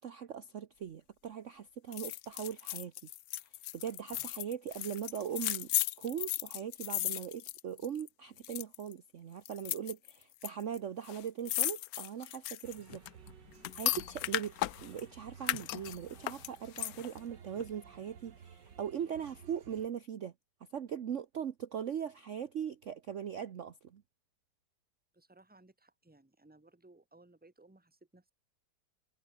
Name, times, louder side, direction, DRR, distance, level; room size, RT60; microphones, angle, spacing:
voice 1, 0.0-2.9 3.7-5.7 6.0-13.0 13.7-14.5 14.8-20.3 20.7-24.0, right 8 dB, 50° right, 1.1 m, -40 dB
sound 1, 1.9-8.1 8.4-8.9 9.5-10.5 10.7-10.8 11.0-15.0 15.4-17.2 17.6-17.7, left 15 dB, 70° left, 0.9 m, -36 dB
sound 2, 12.6-19.9, right 7 dB, 75° right, 2.4 m, -56 dB
voice 2, 25.1-28.3, right 2 dB, 5° right, 1.6 m, -61 dB
omnidirectional pair, 1.9 m